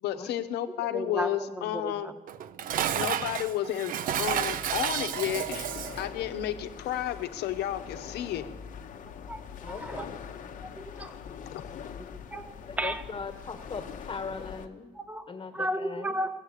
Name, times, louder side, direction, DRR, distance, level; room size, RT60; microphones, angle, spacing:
voice 1, 0.0-2.1 2.9-5.7 6.0-8.4 11.5-11.6, left 11 dB, 75° left, 9 dB, 1.0 m, -32 dB
voice 2, 0.9-1.9 9.3-9.4 9.7-10.0 10.8-11.1 12.0-12.4 12.8-13.0 15.0-15.3 15.5-16.3, right 1 dB, 10° right, 9 dB, 1.0 m, -33 dB
Dishes pots and pans, 2.3-6.1, right 10 dB, 55° right, 0.6 m, -31 dB
sound 1, 4.2-14.7, left 7 dB, 50° left, 0.9 m, -43 dB
voice 3, 9.6-10.2 12.6-14.9 15.3-16.1, left 5 dB, 30° left, 7 dB, 1.5 m, -39 dB
16.0 x 8.0 x 8.1 m, 1.3 s
cardioid pair, 110°, 17 cm